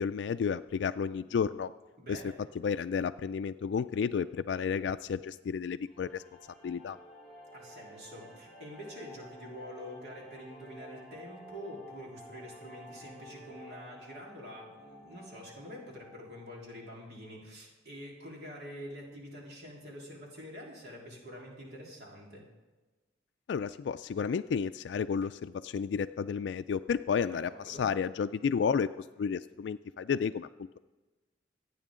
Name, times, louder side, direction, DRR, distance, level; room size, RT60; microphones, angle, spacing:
voice 1, 0.0-1.7 2.1-2.2 2.6-6.2 6.6-7.0 23.5-30.5, left 6 dB, 75° left, 10 dB, 0.3 m, -32 dB
voice 2, 2.0-2.4 7.5-22.4 27.3-27.9, equal, 60° right, -3 dB, 3.7 m, -46 dB
sound 1, 5.9-16.9, equal, ahead, 4.5 m, -52 dB
25.5 x 9.2 x 3.7 m, 1.2 s
head